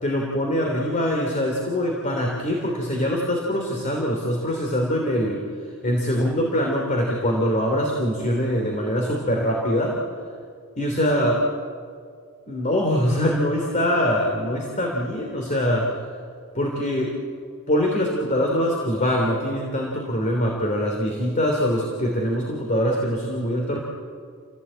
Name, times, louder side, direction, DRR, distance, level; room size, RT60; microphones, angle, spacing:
voice 1, 0.0-5.4 5.8-10.0 10.8-11.4 12.5-15.9 16.5-17.2 17.7-23.8, equal, 35° left, 0 dB, 3.1 m, -23 dB
28.5 x 17.0 x 8.8 m, 2.2 s
head